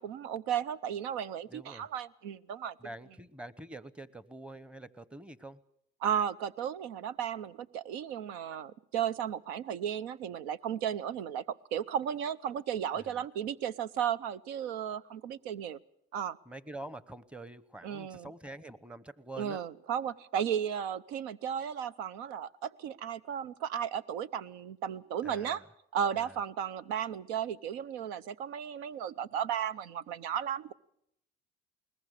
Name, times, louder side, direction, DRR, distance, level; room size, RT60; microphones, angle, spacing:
voice 1, 0.0-2.7 6.0-15.8 16.1-16.4 17.8-18.3 19.4-25.6 25.9-30.7, right 9 dB, 85° right, 16 dB, 0.8 m, -34 dB
voice 2, 1.5-1.9 2.8-5.6 12.9-13.2 16.5-19.6 25.2-25.6 26.1-26.4, right 2 dB, 5° right, 18 dB, 0.9 m, -46 dB
21.5 x 20.0 x 6.6 m, 0.74 s
supercardioid pair, 95°, 21 cm